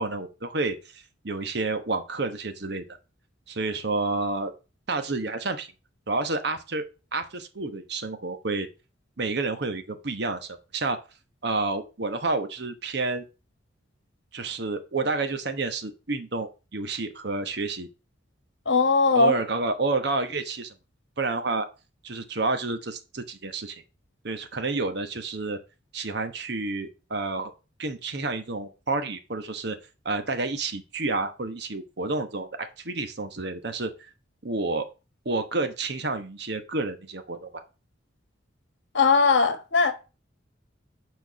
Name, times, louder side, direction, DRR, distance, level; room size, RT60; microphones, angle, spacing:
voice 1, 0.0-3.0 3.5-4.5 4.9-5.7 6.1-6.8 7.1-8.7 9.2-11.0 11.4-13.3 14.3-17.9 19.1-20.7 21.2-21.7 22.0-23.8 24.2-25.6 25.9-27.5 27.8-29.8 30.0-34.1 34.4-34.8 35.2-37.6, right 3 dB, 55° right, 1.1 m, -29 dB
voice 2, 18.7-19.3 38.9-39.9, left 4 dB, 70° left, 1.4 m, -20 dB
6.2 x 4.6 x 6.6 m
head